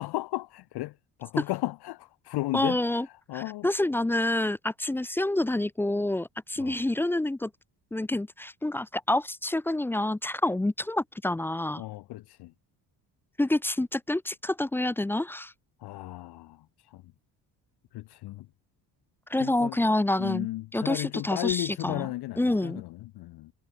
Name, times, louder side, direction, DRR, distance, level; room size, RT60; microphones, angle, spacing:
voice 1, 0.0-3.7 6.6-6.8 11.8-12.5 15.8-17.0 17.9-18.5 19.4-19.8 20.2-23.5, left 18 dB, 65° left, 0.7 m, -35 dB
voice 2, 2.5-3.1 3.3-7.5 7.9-11.8 13.4-15.5 19.3-20.5 20.7-22.1 22.4-22.8, left 1 dB, 5° left, 0.3 m, -27 dB
cardioid pair, 115°, 41 cm